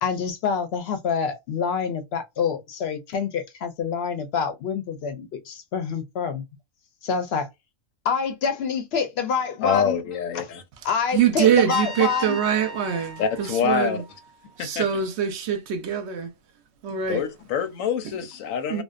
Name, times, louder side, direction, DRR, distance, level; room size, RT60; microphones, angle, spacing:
voice 1, 0.0-6.4 7.0-7.5 8.0-10.0 10.3-10.5 10.8-12.4, left 6 dB, 65° left, 0.7 m, -26 dB
voice 2, 9.6-10.6 13.2-14.0 14.6-14.9 16.9-18.8, left 7 dB, 85° left, 1.0 m, -26 dB
voice 3, 11.1-14.0 14.6-16.3 16.8-17.3 18.7-18.8, right 9 dB, 65° right, 0.8 m, -23 dB
Trumpet, 11.7-14.6, equal, 20° right, 0.9 m, -39 dB
2.6 x 2.1 x 2.3 m
omnidirectional pair, 1.3 m